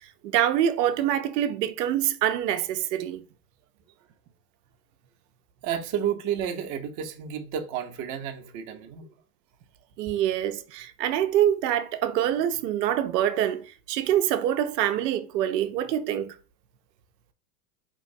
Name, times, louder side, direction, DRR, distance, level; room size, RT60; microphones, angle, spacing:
voice 1, 0.3-3.2 10.0-16.3, right 11 dB, 80° right, 0.6 m, -25 dB
voice 2, 5.6-9.1, right 9 dB, 40° right, 0.7 m, -31 dB
4.5 x 3.0 x 2.6 m
hypercardioid pair, 105°, 49 cm